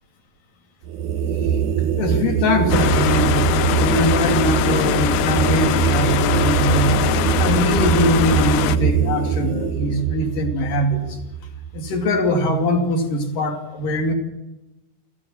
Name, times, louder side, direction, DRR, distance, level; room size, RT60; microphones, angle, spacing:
sound 1, 0.8-12.2, right 8 dB, 80° right, 1.7 m, -22 dB
voice 1, 2.0-3.4 3.7-7.0 7.4-11.0 11.7-14.1, left 1 dB, 50° left, 4 dB, 3.8 m, -22 dB
sound 2, 2.7-8.8, left 10 dB, 85° left, 2.1 m, -22 dB
23.5 x 15.5 x 7.4 m, 0.97 s
omnidirectional pair, 5.5 m